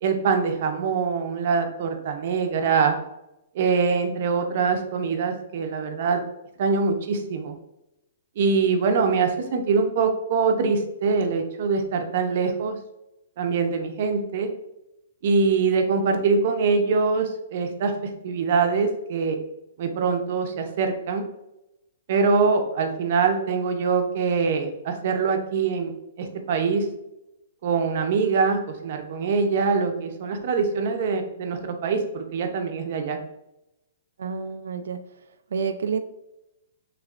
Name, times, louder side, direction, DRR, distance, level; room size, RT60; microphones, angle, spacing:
voice 1, 0.0-3.0 3.5-6.2 6.6-7.5 8.4-12.8 13.4-14.5 15.2-19.4 19.8-21.2 22.1-25.9 26.2-26.9 27.6-33.2, right 5 dB, 40° right, 5 dB, 0.6 m, -23 dB
voice 2, 34.2-35.0 35.5-36.0, right 5 dB, 85° right, 7 dB, 0.4 m, -28 dB
6.4 x 3.0 x 2.5 m, 0.89 s
hypercardioid pair, 180°, 0 cm